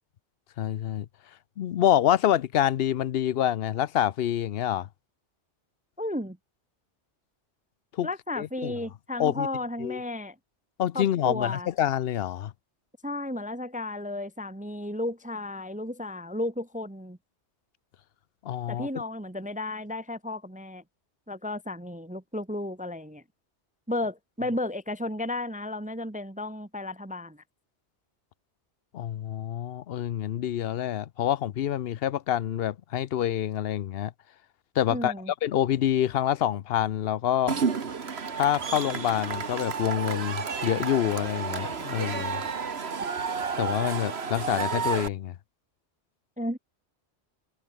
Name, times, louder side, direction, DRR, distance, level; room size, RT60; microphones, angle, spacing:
voice 1, 0.6-1.1 1.6-4.9 8.0-8.1 8.4-8.7 9.2-9.5 9.8-10.0 10.8-12.5 18.4-18.9 28.9-34.1 34.8-35.1 35.4-37.5 38.3-42.4 43.6-45.3, left 11 dB, 60° left, 0.8 m, -27 dB
voice 2, 6.0-6.4 8.0-10.4 10.9-11.7 13.0-17.2 18.7-20.8 21.3-23.2 23.9-27.4 34.9-35.3 46.4-46.6, left 1 dB, 10° right, 0.5 m, -33 dB
Cheering / Crowd, 37.5-45.1, right 5 dB, 65° right, 1.7 m, -31 dB
omnidirectional pair, 1.2 m